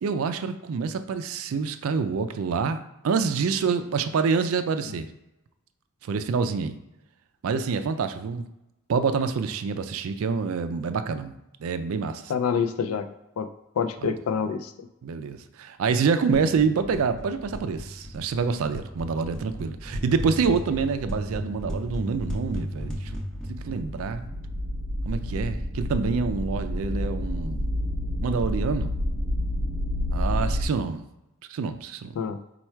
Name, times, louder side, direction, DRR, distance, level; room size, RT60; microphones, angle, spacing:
voice 1, 0.0-2.8 3.0-5.1 6.0-6.8 7.4-8.4 8.9-11.4 11.6-12.2 14.0-14.1 15.0-23.1 23.5-24.2 25.0-27.7 28.2-28.9 30.1-31.0 31.5-32.1, right 5 dB, 75° right, 10 dB, 0.4 m, -27 dB
voice 2, 12.3-13.1 13.4-13.5 13.8-14.7 32.2-32.4, left 6 dB, 80° left, 8 dB, 0.4 m, -26 dB
sound 1, 16.3-25.0, equal, 5° left, 0.5 m, -36 dB
sound 2, 23.4-30.7, left 1 dB, 35° right, 0.7 m, -29 dB
4.4 x 2.3 x 4.4 m, 0.91 s
head